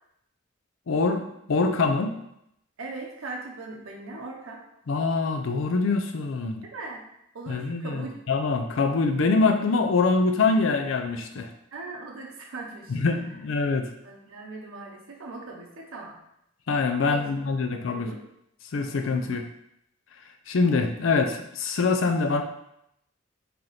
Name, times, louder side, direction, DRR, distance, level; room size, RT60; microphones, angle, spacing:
voice 1, 0.9-2.1 4.9-6.6 7.5-11.5 12.9-13.9 16.7-18.1 18.7-19.4 20.5-22.4, left 4 dB, 70° left, 5 dB, 0.4 m, -24 dB
voice 2, 2.8-4.6 6.7-7.0 7.3-8.2 11.7-13.0 14.0-16.2 17.1-17.2 17.8-18.2 19.1-19.4, right 3 dB, 85° right, 0 dB, 0.6 m, -39 dB
3.2 x 2.9 x 3.8 m, 0.79 s
head